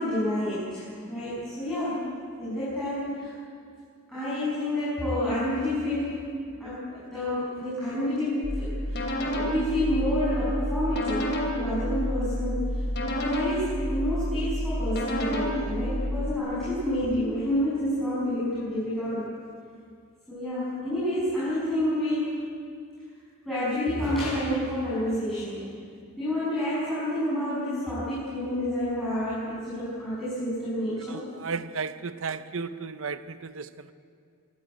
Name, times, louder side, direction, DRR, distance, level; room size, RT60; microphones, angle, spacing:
voice 1, 0.0-2.1 2.4-3.3 4.1-6.3 6.6-19.2 20.3-22.3 23.4-25.7 26.2-31.2, left 1 dB, ahead, 7.7 m, -29 dB
sound 1, 8.4-16.3, equal, 55° left, 3.3 m, -29 dB
voice 2, 31.1-33.9, right 5 dB, 65° right, 0.7 m, -34 dB
24.5 x 15.5 x 9.1 m
head